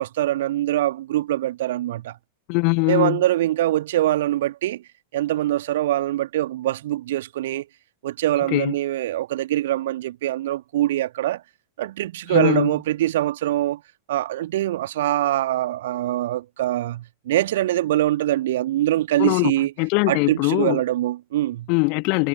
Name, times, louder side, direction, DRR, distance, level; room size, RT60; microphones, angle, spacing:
voice 1, 0.0-2.2 2.9-4.8 5.1-7.7 8.0-11.4 11.8-13.8 14.1-19.7 20.1-21.7, right 14 dB, 55° right, 1.8 m, -23 dB
voice 2, 2.5-3.2 8.5-8.7 12.3-12.7 19.2-19.5 19.8-20.8 21.7-22.3, left 36 dB, 45° left, 1.3 m, -21 dB
figure-of-eight pair, 90°, 0 cm